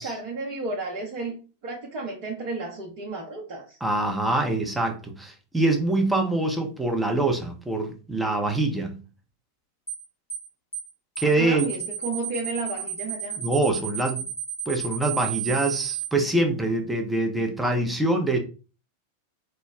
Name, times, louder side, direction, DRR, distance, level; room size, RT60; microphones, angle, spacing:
voice 1, 0.0-1.4 1.6-3.8 11.2-13.4, right 3 dB, 45° right, 0.7 m, -33 dB
voice 2, 3.8-9.0 11.2-11.7 13.4-14.2 14.7-18.4, right 2 dB, 5° right, 0.6 m, -24 dB
sound 1, 9.9-10.0 10.3-10.5 10.7-10.9 11.2-11.3 11.6-16.1, right 10 dB, 70° left, 1.0 m, -32 dB
3.1 x 2.0 x 3.5 m
figure-of-eight pair, 90°, 0 cm